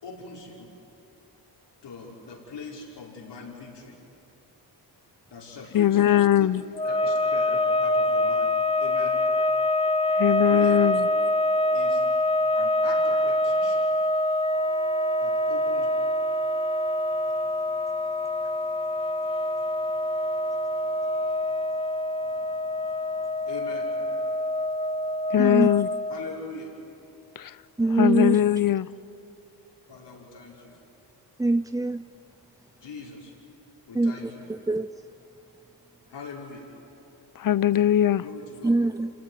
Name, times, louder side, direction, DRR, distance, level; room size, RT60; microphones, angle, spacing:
voice 1, 0.0-0.7 1.8-4.0 5.3-6.5 6.8-8.5 8.8-9.2 9.5-9.6 10.2-10.9 11.7-12.0 12.5-13.8 15.2-15.9 23.5-23.9 26.1-26.7 29.9-30.8 32.8-33.3 33.9-34.4 36.1-36.7 38.2-38.7, left 3 dB, 70° left, 5.8 m, -41 dB
voice 2, 5.7-6.6 10.2-11.1 25.3-25.9 27.4-27.5 28.0-28.9 37.4-38.2, left 11 dB, 50° left, 0.7 m, -20 dB
sound 1, 6.7-26.4, left 1 dB, 15° left, 0.8 m, -25 dB
voice 3, 25.4-25.7 27.8-28.4 31.4-32.0 33.9-34.9 38.6-39.1, right 2 dB, 10° right, 0.5 m, -24 dB
27.5 x 16.5 x 9.8 m
cardioid pair, 60°, 43 cm